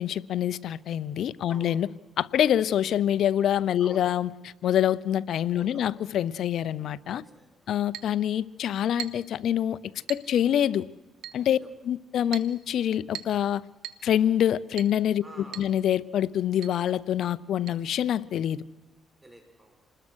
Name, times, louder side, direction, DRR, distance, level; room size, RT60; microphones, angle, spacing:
voice 1, 0.0-1.9 2.2-4.3 4.6-7.2 7.7-9.8 10.1-10.8 11.3-11.6 11.8-13.6 14.0-15.2 15.6-18.6, left 10 dB, 70° left, 0.7 m, -25 dB
voice 2, 1.5-2.0 3.8-4.1 5.6-5.9 7.1-7.8 11.6-11.7 15.2-15.7 19.2-19.8, right 1 dB, 10° right, 5.5 m, -49 dB
Chink clink, 7.9-8.2 9.0-9.3 10.1-10.3 11.2-11.4 12.3-12.6 13.1-13.4 13.8-14.1 14.8-15.0 15.5-15.7 16.0-16.1 16.6-16.8 17.7-17.8, right 11 dB, 80° right, 1.3 m, -39 dB
27.5 x 20.5 x 6.4 m
cardioid pair, 90°, 0 cm